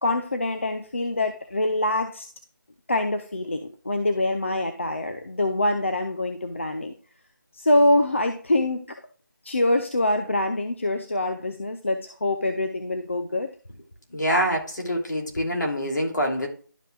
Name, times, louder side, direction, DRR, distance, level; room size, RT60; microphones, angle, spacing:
voice 1, 0.0-2.3 2.9-6.9 7.5-9.0 9.4-13.5, left 1 dB, 35° left, 7 dB, 0.6 m, -25 dB
voice 2, 14.1-16.5, equal, 60° left, 1 dB, 2.8 m, -25 dB
12.0 x 5.5 x 2.3 m, 0.42 s
figure-of-eight pair, 175°, 11 cm